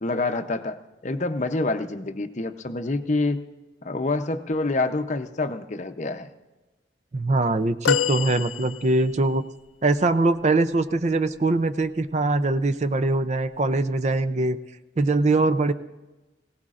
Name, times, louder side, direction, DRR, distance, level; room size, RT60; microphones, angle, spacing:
voice 1, 0.0-3.4 3.8-6.3, left 2 dB, 40° left, 8 dB, 0.6 m, -27 dB
voice 2, 7.1-9.4 9.8-14.6 15.0-15.7, right 2 dB, 35° right, 12 dB, 0.4 m, -22 dB
sound 1, 7.8-9.3 11.6-11.8 13.1-13.2, left 8 dB, 90° left, 0.4 m, -26 dB
19.5 x 18.0 x 2.5 m, 1.1 s
head